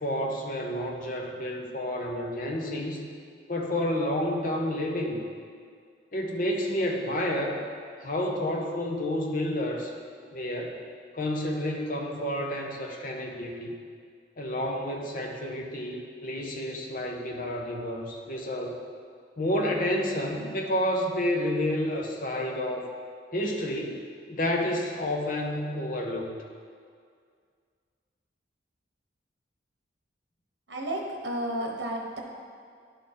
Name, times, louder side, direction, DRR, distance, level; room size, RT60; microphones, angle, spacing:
voice 1, 0.0-3.1 3.5-5.2 6.1-7.6 8.0-9.9 10.3-10.8 11.1-13.7 14.4-18.8 19.4-22.9 23.3-24.0 24.3-26.4, left 1 dB, 45° left, 1 dB, 0.8 m, -30 dB
voice 2, 30.7-32.2, right 1 dB, 70° right, 0 dB, 1.0 m, -32 dB
10.5 x 3.6 x 4.3 m, 2.1 s
head